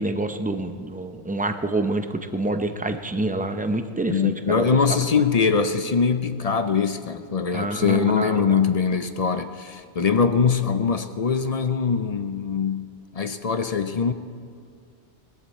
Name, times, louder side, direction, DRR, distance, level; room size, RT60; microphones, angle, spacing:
voice 1, 0.0-4.7 7.5-8.6, right 2 dB, 10° right, 0.4 m, -27 dB
voice 2, 4.1-14.1, left 5 dB, 45° left, 0.5 m, -22 dB
20.0 x 14.0 x 4.3 m
omnidirectional pair, 1.1 m